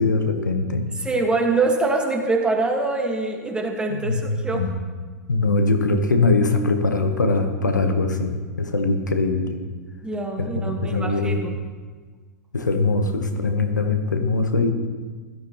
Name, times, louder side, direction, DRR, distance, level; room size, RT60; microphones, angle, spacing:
voice 1, 0.0-0.9 3.9-4.7 5.3-9.6 10.4-11.4 12.5-14.7, left 3 dB, 90° left, 6 dB, 1.2 m, -22 dB
voice 2, 1.0-4.7 10.0-11.5, right 3 dB, 10° right, 2 dB, 1.7 m, -24 dB
16.5 x 13.0 x 3.1 m, 1.4 s
figure-of-eight pair, 100°, 10 cm